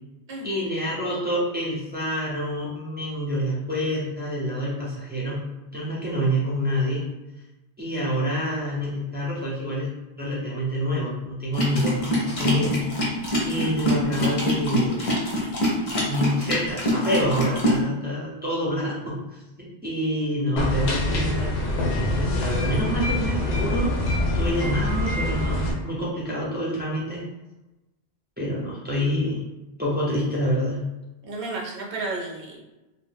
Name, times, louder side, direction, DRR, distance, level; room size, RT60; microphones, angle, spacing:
voice 1, 0.4-5.5 5.7-7.0 7.8-13.1 13.4-15.1 16.1-19.2 19.8-21.6 22.0-23.9 24.3-27.2 28.4-29.4 29.8-30.8, equal, 10° right, -7 dB, 0.6 m, -27 dB
sound 1, 11.5-17.8, equal, 50° left, 0.8 m, -24 dB
sound 2, 20.6-25.7, left 1 dB, 80° left, 0.9 m, -25 dB
voice 2, 31.2-32.6, right 2 dB, 65° right, -1 dB, 0.8 m, -32 dB
2.6 x 2.1 x 3.3 m, 1.0 s
omnidirectional pair, 1.1 m